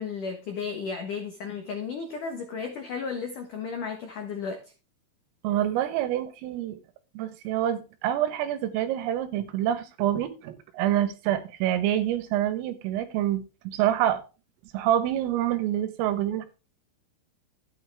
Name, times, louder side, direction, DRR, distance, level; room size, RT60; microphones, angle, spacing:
voice 1, 0.0-4.7, left 5 dB, 75° left, 1.9 m, -34 dB
voice 2, 5.4-6.8 7.2-14.2 14.7-16.5, right 12 dB, 80° right, 3.8 m, -27 dB
13.5 x 9.2 x 3.5 m
omnidirectional pair, 6.0 m